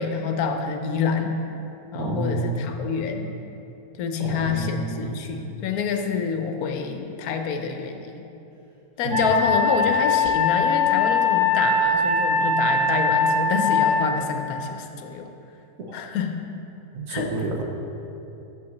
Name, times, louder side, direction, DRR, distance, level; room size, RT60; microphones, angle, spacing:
voice 1, 0.0-1.3 1.9-3.3 4.0-8.3 9.0-15.3 15.9-16.4 17.1-17.3, left 5 dB, 75° left, 5 dB, 1.1 m, -27 dB
voice 2, 1.9-2.7 4.2-5.1 9.0-9.4 15.9-16.0 16.9-17.6, right 2 dB, 65° right, 1 dB, 1.1 m, -29 dB
Wind instrument woodwind instrument, 9.1-14.0, left 3 dB, 30° right, 0.5 m, -21 dB
6.2 x 5.7 x 6.4 m, 2.9 s
omnidirectional pair, 1.6 m